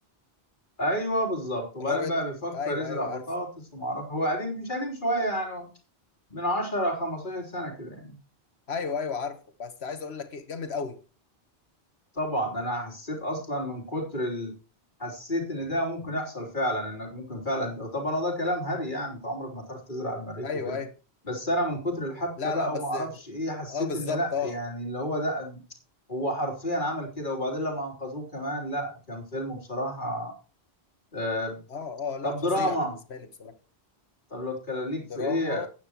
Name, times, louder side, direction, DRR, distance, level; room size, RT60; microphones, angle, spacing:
voice 1, 0.8-5.7 6.3-8.2 12.1-14.5 15.0-20.8 21.3-25.6 26.1-30.3 31.1-31.6 32.2-32.9 34.3-35.7, equal, 50° left, 3.7 m, -30 dB
voice 2, 1.8-2.2 2.5-3.2 8.7-11.0 20.4-20.9 22.4-23.1 23.7-24.6 31.7-32.8 33.1-33.6 35.1-35.7, left 5 dB, 80° left, 1.6 m, -33 dB
15.0 x 9.4 x 3.0 m
omnidirectional pair, 1.1 m